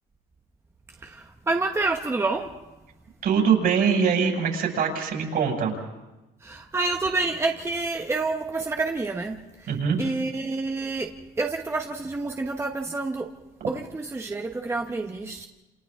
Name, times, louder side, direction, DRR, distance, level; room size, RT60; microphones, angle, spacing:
voice 1, 1.0-2.5 6.4-9.4 10.0-13.3 13.7-15.5, right 3 dB, 15° right, 3 dB, 1.1 m, -28 dB
voice 2, 3.2-5.8 9.7-10.0, right 6 dB, 65° right, 1 dB, 6.0 m, -23 dB
28.5 x 28.5 x 3.7 m, 1.0 s
cardioid pair, 110°, 17 cm